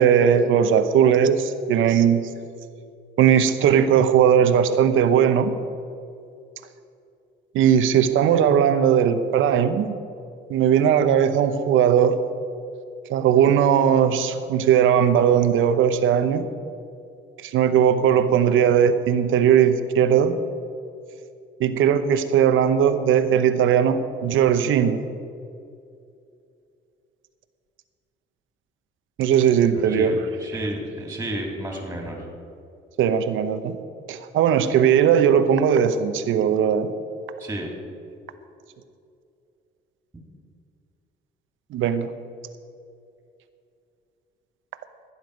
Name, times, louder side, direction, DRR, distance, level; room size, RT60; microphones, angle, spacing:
voice 1, 0.0-2.2 3.2-5.5 7.5-10.0 10.5-12.2 13.1-16.5 17.4-20.4 21.6-25.0 29.2-30.2 33.0-33.7 34.1-36.9 41.7-42.1, right 8 dB, 85° right, 10 dB, 0.9 m, -18 dB
voice 2, 29.7-32.2 37.4-37.7, right 1 dB, 10° right, -1 dB, 3.7 m, -32 dB
15.0 x 9.8 x 5.2 m, 2.5 s
cardioid pair, 90°, 20 cm